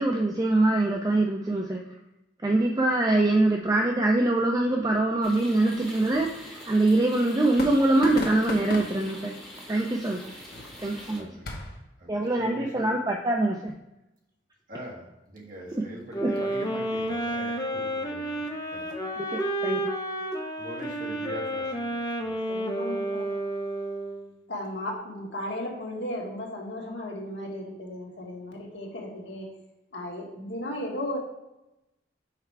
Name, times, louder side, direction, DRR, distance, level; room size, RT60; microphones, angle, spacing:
voice 1, 0.0-1.8 2.4-9.3 9.7-10.2 10.8-11.3 12.1-13.7 15.7-15.8 16.2-16.3 19.3-19.8, right 2 dB, 20° right, 1 dB, 0.5 m, -24 dB
sound 1, 4.7-11.8, left 1 dB, 55° left, 1.1 m, -39 dB
sound 2, 5.2-11.2, equal, ahead, 2.4 m, -44 dB
voice 2, 11.1-11.4 12.0-13.0 14.7-18.9 19.4-19.7 20.6-22.4, right 1 dB, 50° right, -2 dB, 1.7 m, -42 dB
sound 3, 16.1-24.3, right 1 dB, 20° left, 0.8 m, -31 dB
voice 3, 22.5-23.3 24.5-29.6 29.9-31.2, left 1 dB, 75° left, -1 dB, 1.5 m, -35 dB
5.8 x 4.4 x 4.6 m, 0.93 s
head